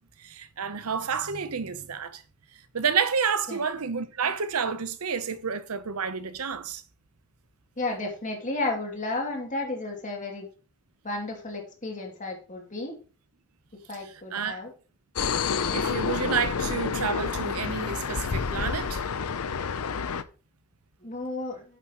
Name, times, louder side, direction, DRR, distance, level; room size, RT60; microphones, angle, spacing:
voice 1, 0.2-2.2 2.7-6.8 14.0-14.6 15.6-19.0, right 6 dB, 85° right, 0.8 m, -30 dB
voice 2, 7.8-10.5 11.0-12.9 13.9-14.7 21.0-21.6, left 2 dB, 35° left, 2.6 m, -32 dB
sound 1, 15.2-20.2, left 5 dB, 90° left, 0.6 m, -29 dB
9.5 x 7.2 x 3.0 m
head